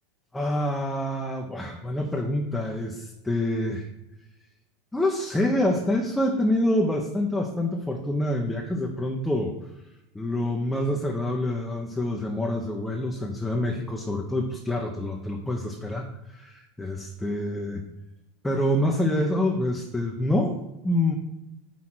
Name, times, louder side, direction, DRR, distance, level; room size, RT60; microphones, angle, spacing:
voice 1, 0.3-3.9 4.9-9.5 10.1-17.8 18.4-20.6 20.8-21.2, left 1 dB, 5° left, 0 dB, 0.8 m, -26 dB
5.8 x 4.2 x 6.1 m, 0.94 s
hypercardioid pair, 95°, 0 cm